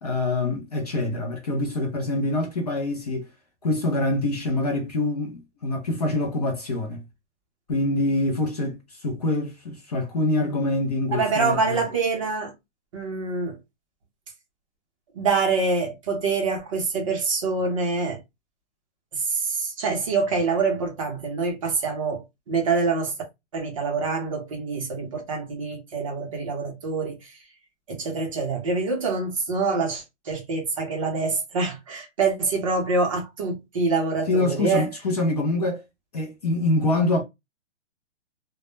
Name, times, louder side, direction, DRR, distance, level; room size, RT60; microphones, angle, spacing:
voice 1, 0.0-3.3 3.6-7.0 7.7-11.8 34.3-35.8 36.1-37.2, left 2 dB, 35° left, 0.4 m, -25 dB
voice 2, 11.1-12.5 12.9-13.5 15.1-18.2 19.1-23.1 23.5-27.3 27.9-34.9, right 4 dB, 30° right, 0.6 m, -25 dB
2.1 x 2.0 x 2.9 m
hypercardioid pair, 160°, 36 cm